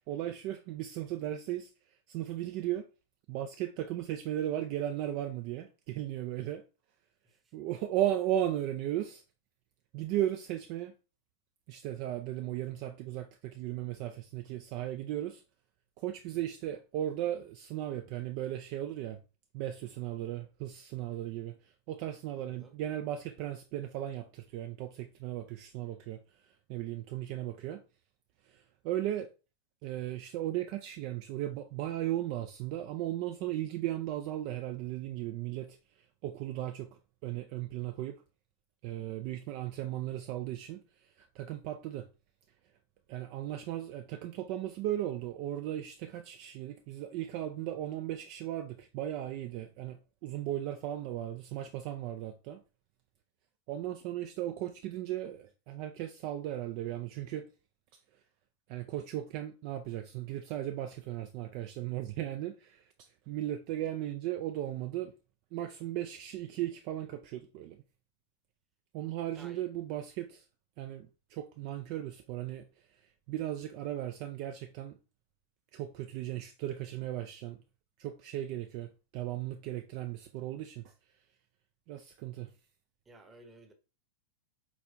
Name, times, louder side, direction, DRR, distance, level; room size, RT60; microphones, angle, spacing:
voice 1, 0.1-1.7 2.1-2.9 3.3-6.6 7.5-9.2 9.9-10.9 11.7-15.4 16.0-19.2 19.5-26.2 26.7-27.8 28.5-29.3 29.8-35.8 36.2-38.2 38.8-40.8 41.2-42.1 43.1-52.6 53.7-57.4 58.7-65.1 65.5-67.8 68.9-70.4 70.8-72.6 73.3-75.0 75.7-77.6 78.0-80.9 81.9-82.5, right 12 dB, 45° right, 0.4 m, -36 dB
voice 2, 22.3-22.8 69.3-69.7 83.1-83.7, right 2 dB, 15° right, 0.9 m, -54 dB
4.4 x 4.1 x 2.6 m
figure-of-eight pair, 90°, 0 cm